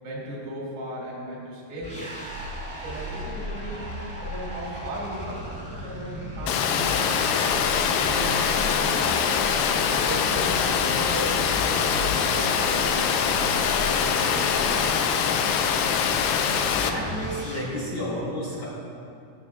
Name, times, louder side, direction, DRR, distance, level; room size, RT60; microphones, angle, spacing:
voice 1, 0.0-2.1 2.8-7.3 7.7-9.2 9.8-13.2 13.6-14.9, right 1 dB, 75° right, -5 dB, 4.1 m, -36 dB
sound 1, 1.8-17.6, equal, 5° right, 1.1 m, -35 dB
Water, 6.5-16.9, left 7 dB, 90° left, 2.7 m, -23 dB
voice 2, 16.7-18.7, left 1 dB, 55° left, -7 dB, 2.0 m, -31 dB
17.5 x 7.9 x 2.3 m, 2.5 s
omnidirectional pair, 4.7 m